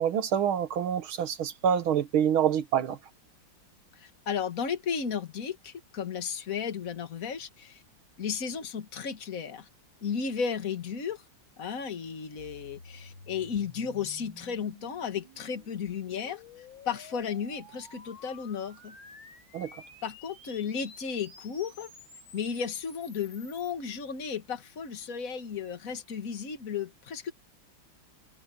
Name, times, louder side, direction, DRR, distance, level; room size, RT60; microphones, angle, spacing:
voice 1, 0.0-3.0 19.5-19.7, right 9 dB, 75° right, 2.2 m, -26 dB
voice 2, 3.9-7.8 8.2-9.7 10.0-11.2 11.6-19.0 20.0-21.9 22.3-27.3, left 6 dB, 40° left, 2.0 m, -34 dB
sound 1, 12.4-23.7, left 3 dB, 70° left, 5.4 m, -52 dB
omnidirectional pair, 2.3 m